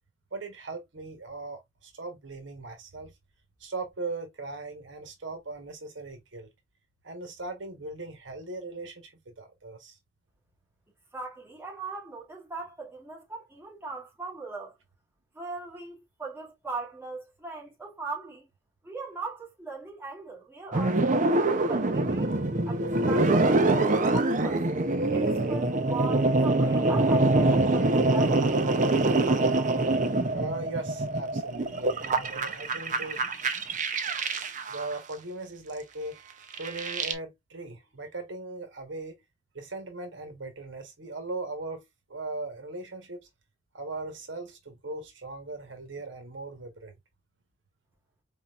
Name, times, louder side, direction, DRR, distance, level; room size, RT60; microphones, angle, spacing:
voice 1, 0.3-3.1 3.6-6.5 7.0-10.0 30.3-33.2 34.7-36.2 36.6-39.1 39.5-43.3 43.7-46.9, right 2 dB, 85° right, 1.3 m, -39 dB
voice 2, 11.1-14.7 15.3-18.5 18.8-22.3 22.7-24.6 25.1-28.7, right 4 dB, 10° right, 2.3 m, -40 dB
sound 1, 20.7-35.0 36.5-37.1, right 2 dB, 45° right, 0.6 m, -25 dB
4.2 x 3.8 x 2.4 m
head